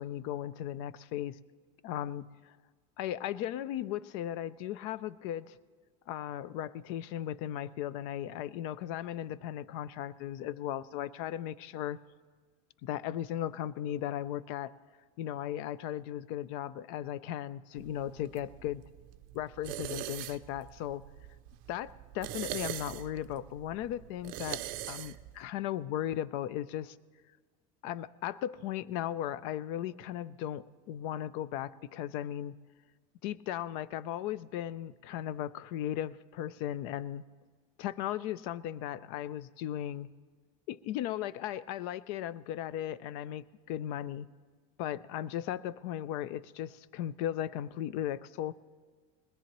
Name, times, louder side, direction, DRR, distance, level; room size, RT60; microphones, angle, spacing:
voice 1, 0.0-1.4 1.8-2.3 3.0-5.6 6.1-12.0 12.8-14.7 15.2-18.8 19.3-21.0 21.7-27.0 27.8-32.6 33.2-37.2 37.8-40.1 40.7-44.3 44.8-48.5, left 11 dB, 65° left, 18 dB, 0.5 m, -36 dB
sound 1, 17.8-25.4, right 15 dB, 50° right, 0.5 m, -42 dB
20.5 x 17.5 x 3.0 m, 1.5 s
cardioid pair, 150°, 18 cm